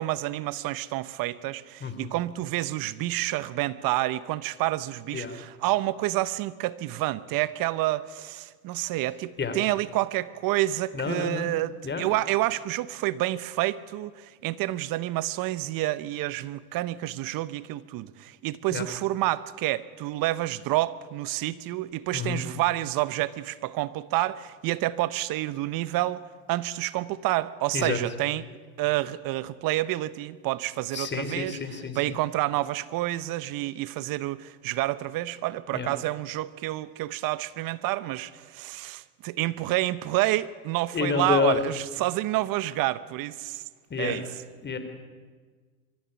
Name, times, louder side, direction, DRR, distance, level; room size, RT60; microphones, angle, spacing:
voice 1, 0.0-26.2 26.5-28.4 28.8-31.6 31.9-43.6 44.0-44.3, right 16 dB, 50° right, 1.0 m, -29 dB
voice 2, 1.8-2.1 5.1-5.4 9.4-9.5 10.9-11.5 11.8-12.1 18.7-18.8 22.1-22.5 27.7-28.0 30.9-32.1 35.7-35.9 40.9-41.6 43.9-44.2 44.6-44.8, left 5 dB, 25° left, 3.1 m, -29 dB
23.5 x 14.0 x 9.8 m
hypercardioid pair, 95°, 44 cm